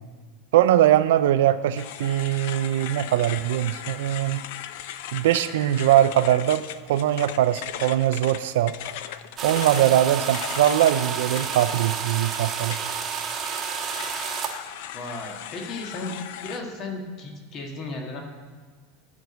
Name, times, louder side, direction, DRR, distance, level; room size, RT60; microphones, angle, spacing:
voice 1, 0.5-4.4 5.1-6.6 6.9-8.7 9.4-12.8, right 12 dB, 85° right, 10 dB, 0.4 m, -21 dB
sound 1, 1.8-12.2 12.7-16.6, left 11 dB, 65° left, 0.5 m, -38 dB
sound 2, 9.4-14.5, right 6 dB, 20° right, 1.4 m, -30 dB
voice 2, 14.9-16.2 16.4-18.2, left 2 dB, 35° left, 1 dB, 1.7 m, -35 dB
11.5 x 6.0 x 8.0 m, 1.5 s
supercardioid pair, 160°, 0 cm